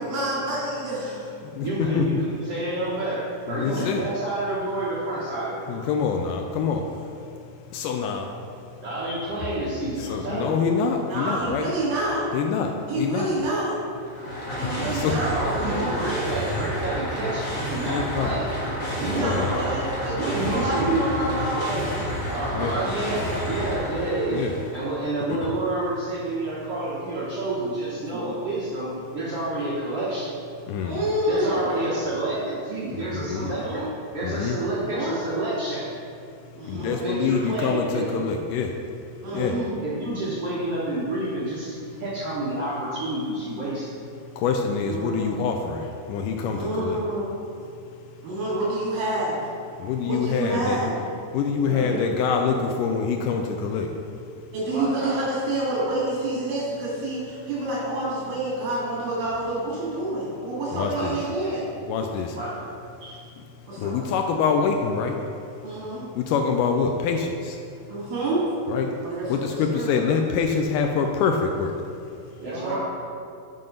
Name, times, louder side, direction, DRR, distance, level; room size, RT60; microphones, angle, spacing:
voice 1, 0.0-1.3 3.7-3.9 9.0-9.2 11.1-12.3 12.9-13.8 14.6-16.1 19.1-22.1 28.1-28.3 29.3-29.4 30.8-32.0 33.4-33.9 34.7-35.2 36.6-37.0 39.2-39.6 44.9-45.5 46.5-47.4 48.2-49.4 50.0-51.0 54.5-61.7 63.7-64.0 65.6-66.1 67.9-68.5 69.0-70.0 72.5-72.8, right 1 dB, 80° right, -8 dB, 3.8 m, -28 dB
voice 2, 1.6-5.9 8.8-10.6 15.2-18.6 19.0-19.7 20.1-21.1 22.3-30.3 31.3-33.8 34.1-35.8 36.7-38.2 39.5-43.9 51.7-52.1 54.7-55.2 60.9-61.1 62.3-62.7 63.0-63.2 72.4-72.8, right 2 dB, 60° right, -8 dB, 1.6 m, -29 dB
voice 3, 3.5-4.1 5.7-6.9 7.7-8.3 10.0-11.7 12.3-13.3 14.9-15.1 17.8-18.3 19.1-19.6 22.6-22.7 24.3-24.5 30.7-31.0 33.1-33.5 34.2-34.6 36.6-38.8 39.3-39.5 44.4-47.0 49.8-50.9 51.3-53.9 60.7-61.2 61.9-62.4 63.8-65.2 66.2-67.6 68.7-68.9 69.3-71.8, left 6 dB, 80° left, 3 dB, 1.9 m, -25 dB
sound 1, 14.0-24.8, equal, 40° left, 1.9 m, -30 dB
7.8 x 5.7 x 5.2 m, 2.5 s
omnidirectional pair, 4.1 m